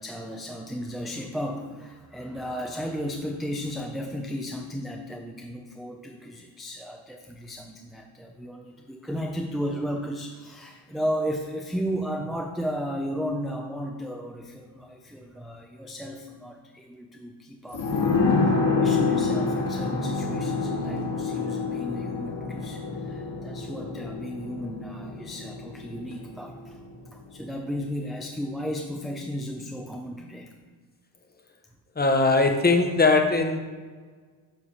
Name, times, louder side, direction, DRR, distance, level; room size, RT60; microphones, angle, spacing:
voice 1, 0.0-18.2 18.4-26.8 27.1-30.5, equal, ahead, 0 dB, 0.4 m, -34 dB
sound 1, 17.7-27.0 27.3-27.4, left 4 dB, 55° left, 1.8 m, -27 dB
voice 2, 32.0-33.6, left 3 dB, 20° left, 5 dB, 0.8 m, -20 dB
7.4 x 3.3 x 5.5 m, 1.5 s
cardioid pair, 95°, 47 cm